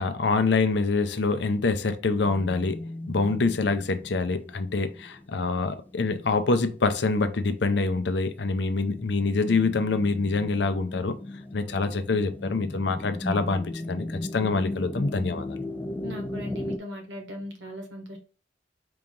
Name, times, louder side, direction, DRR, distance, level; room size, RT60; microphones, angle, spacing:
voice 1, 0.0-11.1 11.5-15.6, left 3 dB, 70° left, 0.6 m, -26 dB
sound 1, 2.0-16.8, left 1 dB, 10° left, 0.3 m, -38 dB
voice 2, 16.0-18.2, left 1 dB, 90° right, 1.5 m, -38 dB
4.8 x 3.0 x 3.7 m
head